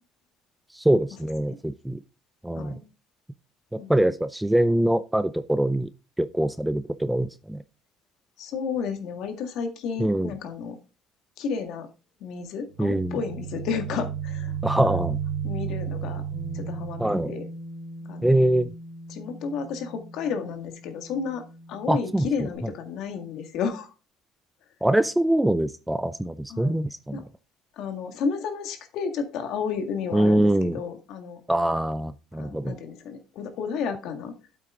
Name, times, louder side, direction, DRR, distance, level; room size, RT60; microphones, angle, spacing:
voice 1, 0.7-2.0 2.4-2.8 3.7-5.9 6.2-7.6 10.0-10.3 12.8-13.2 14.6-15.2 17.0-17.3 18.2-18.7 21.9-22.7 24.8-27.2 30.1-30.8 31.5-32.8, right 1 dB, 5° right, 14 dB, 0.4 m, -23 dB
voice 2, 8.4-10.8 11.4-11.9 12.2-15.2 15.4-16.2 16.5-17.4 18.1-18.4 19.1-21.4 21.7-23.9 26.5-26.7 27.1-27.2 27.8-31.4 32.4-34.3, left 6 dB, 60° left, 6 dB, 1.9 m, -32 dB
sound 1, 12.8-17.5, right 9 dB, 80° right, 0.6 m, -32 dB
Bass guitar, 16.3-22.6, equal, 15° left, 4.1 m, -42 dB
8.6 x 8.1 x 3.7 m, 0.32 s
cardioid pair, 160°, 0 cm